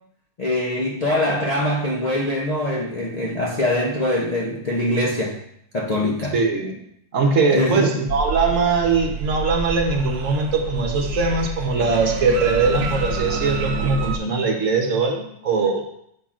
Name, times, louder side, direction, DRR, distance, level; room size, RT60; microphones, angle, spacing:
voice 1, 0.4-5.4 5.7-6.4 7.5-7.9, left 1 dB, 70° left, -3 dB, 0.3 m, -23 dB
voice 2, 6.3-6.7 7.1-15.8, right 4 dB, 55° right, 2 dB, 1.1 m, -21 dB
sound 1, 8.1-14.2, right 3 dB, 75° right, 1.2 m, -28 dB
7.7 x 5.7 x 2.4 m, 0.73 s
omnidirectional pair, 1.8 m